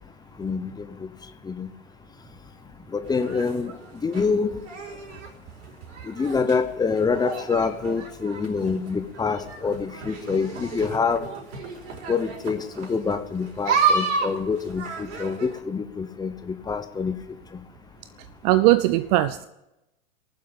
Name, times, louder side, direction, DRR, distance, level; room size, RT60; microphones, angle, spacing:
voice 1, 0.4-1.1 1.4-1.7 2.9-3.7 4.0-4.6 6.1-11.3 12.1-17.1, left 5 dB, 10° left, 9 dB, 0.9 m, -26 dB
sound 1, 3.0-15.6, right 5 dB, 60° right, 4.8 m, -31 dB
voice 2, 18.4-19.4, right 16 dB, 30° right, 15 dB, 0.5 m, -19 dB
19.0 x 7.6 x 9.0 m, 0.93 s
hypercardioid pair, 110°, 40 cm